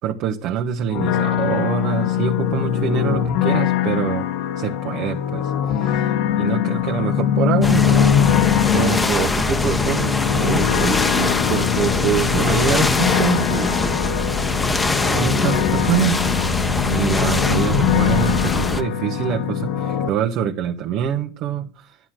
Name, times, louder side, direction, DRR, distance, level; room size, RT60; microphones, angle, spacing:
voice 1, 0.0-4.3 4.6-13.8 15.1-16.3 16.9-22.0, right 9 dB, 55° right, 1.6 m, -25 dB
sound 1, 0.9-20.1, left 9 dB, 65° left, 1.8 m, -22 dB
sound 2, 7.6-18.8, left 2 dB, 15° left, 1.3 m, -22 dB
11.5 x 11.0 x 6.2 m
supercardioid pair, 105°, 0 cm